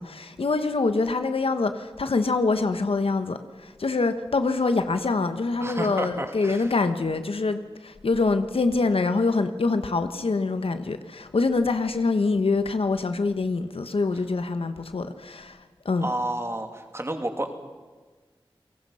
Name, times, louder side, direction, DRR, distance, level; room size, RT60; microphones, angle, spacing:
voice 1, 0.0-15.6 15.8-16.1, left 3 dB, 80° left, 1.3 m, -25 dB
voice 2, 5.6-6.7 16.0-17.5, right 1 dB, 30° right, 2.8 m, -30 dB
29.5 x 18.0 x 5.7 m
wide cardioid pair, 50°, 9 cm